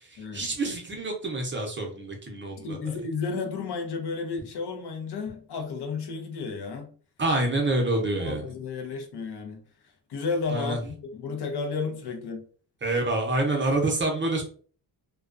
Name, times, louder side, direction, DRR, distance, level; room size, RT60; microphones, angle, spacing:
voice 1, 0.3-2.8 7.2-8.4 10.5-10.8 12.8-14.4, right 2 dB, 25° right, 0.6 m, -27 dB
voice 2, 2.6-6.9 8.2-9.6 10.1-12.4, left 4 dB, 60° left, 0.7 m, -32 dB
2.3 x 2.2 x 2.4 m
cardioid pair, 95°, 44 cm